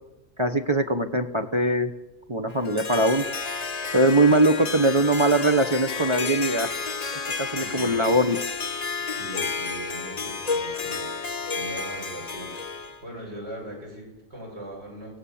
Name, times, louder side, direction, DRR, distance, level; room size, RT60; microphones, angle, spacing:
voice 1, 0.4-1.9 2.3-3.2 3.9-6.7 7.4-8.4, right 1 dB, 25° right, 6 dB, 1.0 m, -21 dB
Harp, 2.5-13.0, left 4 dB, 35° left, 0.9 m, -31 dB
voice 2, 7.4-8.2 9.0-12.5 13.0-15.2, right 1 dB, 50° right, -2 dB, 8.1 m, -40 dB
29.0 x 17.0 x 7.2 m, 1.1 s
omnidirectional pair, 1.4 m